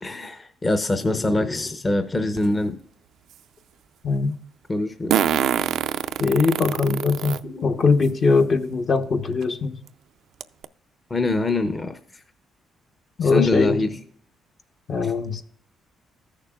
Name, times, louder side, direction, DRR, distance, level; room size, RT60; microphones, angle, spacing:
voice 1, 0.0-2.8 4.7-5.2 7.4-7.8 11.1-12.2 13.2-14.0 15.0-15.1, left 2 dB, 25° left, 0.7 m, -24 dB
Fart, 2.4-2.5 5.1-7.4 8.0-8.1 9.4-9.5 9.9-10.0 10.4-10.6, right 10 dB, 80° right, 0.4 m, -24 dB
voice 2, 6.2-9.8 13.2-13.8 14.9-15.4, left 4 dB, 50° left, 1.0 m, -21 dB
14.5 x 6.7 x 2.3 m
cardioid pair, 90°, 0 cm